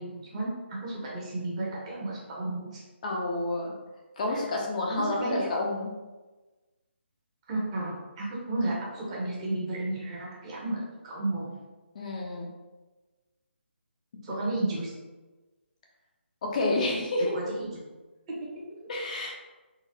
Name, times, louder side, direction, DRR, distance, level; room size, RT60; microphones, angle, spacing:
voice 1, 0.0-2.8 4.3-4.4 4.9-5.5 7.5-11.5 14.2-14.9 17.3-17.8 18.3-18.4, right 2 dB, 30° right, -4 dB, 0.9 m, -33 dB
voice 2, 3.0-3.7 4.2-5.9 11.9-12.5 16.4-17.3 18.9-19.3, left 2 dB, 40° left, -1 dB, 0.5 m, -29 dB
3.8 x 2.4 x 2.8 m, 1.2 s
figure-of-eight pair, 150°, 6 cm